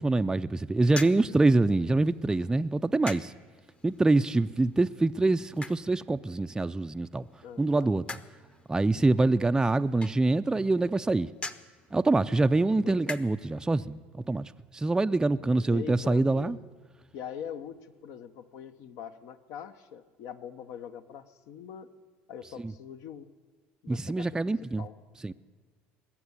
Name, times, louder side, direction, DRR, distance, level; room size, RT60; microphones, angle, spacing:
voice 1, 0.0-3.3 3.8-7.3 7.6-8.0 8.7-11.3 11.9-14.0 14.3-16.6 22.6-22.7 23.9-24.8 25.2-25.3, right 2 dB, 10° right, 0.4 m, -25 dB
sound 1, 0.8-13.6, left 2 dB, 20° left, 0.8 m, -46 dB
voice 2, 7.4-7.9 12.8-13.2 15.4-16.6 17.1-21.9 22.3-23.3 23.8-24.4 24.8-24.9, left 8 dB, 65° left, 0.9 m, -43 dB
20.0 x 7.3 x 9.7 m
hypercardioid pair, 80°, 6 cm